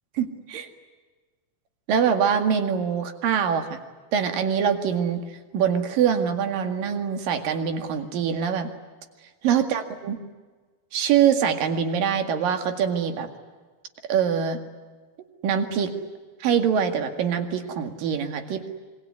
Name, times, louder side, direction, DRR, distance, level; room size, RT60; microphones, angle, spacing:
voice 1, 0.2-0.7 1.9-3.8 4.1-5.2 5.5-8.7 9.4-10.2 10.9-13.3 14.1-14.6 15.4-15.9 16.4-18.7, right 7 dB, 65° right, 7 dB, 3.6 m, -24 dB
26.5 x 23.0 x 9.7 m, 1.4 s
omnidirectional pair, 4.4 m